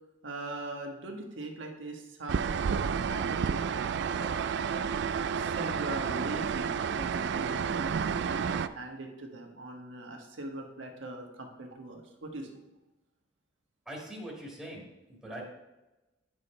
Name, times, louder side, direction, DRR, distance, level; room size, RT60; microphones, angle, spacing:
voice 1, 0.2-3.6 3.9-4.3 4.7-4.9 5.3-12.5, right 1 dB, 85° right, 2 dB, 1.4 m, -41 dB
sound 1, 2.3-8.7, right 6 dB, 65° right, 0.4 m, -30 dB
voice 2, 13.9-15.4, right 1 dB, ahead, -4 dB, 1.7 m, -42 dB
8.6 x 6.1 x 4.3 m, 1.0 s
head